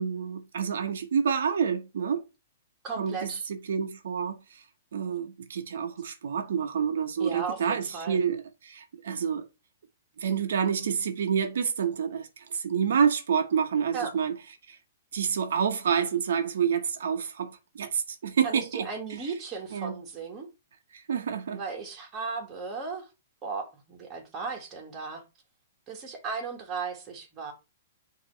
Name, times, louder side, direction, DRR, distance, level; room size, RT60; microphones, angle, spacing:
voice 1, 0.0-2.2 3.0-4.6 4.9-9.4 10.2-14.3 14.7-14.8 15.1-18.9 19.7-19.9 20.9-21.6, right 7 dB, 75° right, 0.8 m, -28 dB
voice 2, 2.8-3.5 7.2-8.2 13.9-14.1 18.4-20.5 21.5-23.1 23.4-25.2 25.9-27.5, right 5 dB, 15° right, 1.6 m, -36 dB
7.7 x 2.9 x 4.3 m
hypercardioid pair, 165°, 0 cm